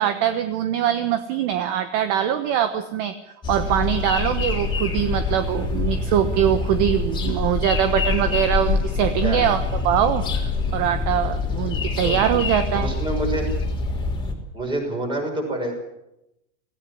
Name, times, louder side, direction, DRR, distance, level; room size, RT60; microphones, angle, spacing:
voice 1, 0.0-3.1 3.5-12.9, right 10 dB, 40° right, 10 dB, 1.2 m, -23 dB
sound 1, 3.4-14.3, left 4 dB, 15° left, 3.2 m, -25 dB
voice 2, 9.2-9.6 12.0-12.2 12.7-13.5 14.5-15.7, right 2 dB, 15° right, 3 dB, 5.9 m, -27 dB
18.5 x 17.0 x 9.8 m, 0.88 s
supercardioid pair, 160°, 36 cm